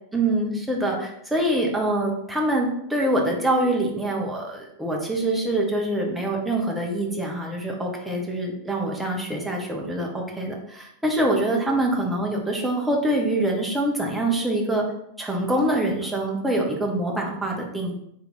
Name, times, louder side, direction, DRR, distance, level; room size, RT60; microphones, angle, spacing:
voice 1, 0.1-14.9 15.2-17.9, right 1 dB, 5° right, -1 dB, 0.9 m, -25 dB
3.3 x 3.1 x 3.8 m, 0.76 s
figure-of-eight pair, 90°, 0 cm